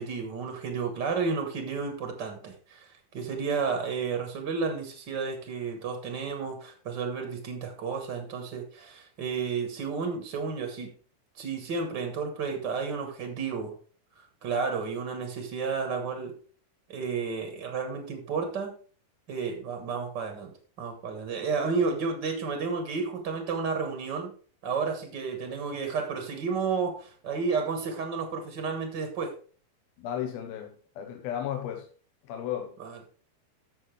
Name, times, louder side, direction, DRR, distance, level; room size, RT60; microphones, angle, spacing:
voice 1, 0.0-10.9 11.3-13.7 14.1-16.3 16.9-18.8 19.3-24.3 24.6-29.3 32.8-33.0, right 5 dB, 55° right, 1.2 m, -32 dB
voice 2, 30.0-31.9 32.3-32.8, left 10 dB, 85° left, 2.9 m, -34 dB
12.5 x 6.8 x 3.3 m
omnidirectional pair, 4.2 m